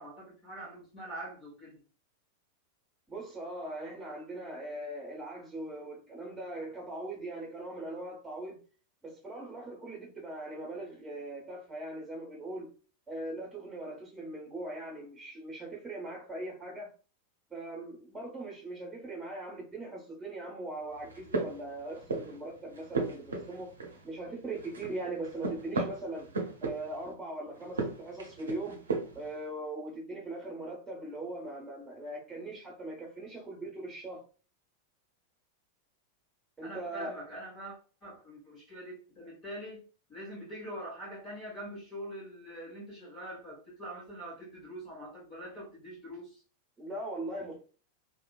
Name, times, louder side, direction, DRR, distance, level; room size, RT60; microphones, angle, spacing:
voice 1, 0.0-1.8 36.6-39.8 40.1-46.4, right 1 dB, 30° left, 1.3 m, -44 dB
voice 2, 3.1-8.6 9.0-12.7 13.1-16.9 17.5-23.7 24.0-26.3 26.6-28.8 29.1-34.2 36.6-37.1 46.8-47.6, right 2 dB, 10° right, 1.2 m, -40 dB
sound 1, 21.0-22.4 22.7-24.3 24.5-27.1 27.6-29.3, right 3 dB, 70° right, 0.6 m, -36 dB
2.8 x 2.4 x 2.3 m
figure-of-eight pair, 90°, 0 cm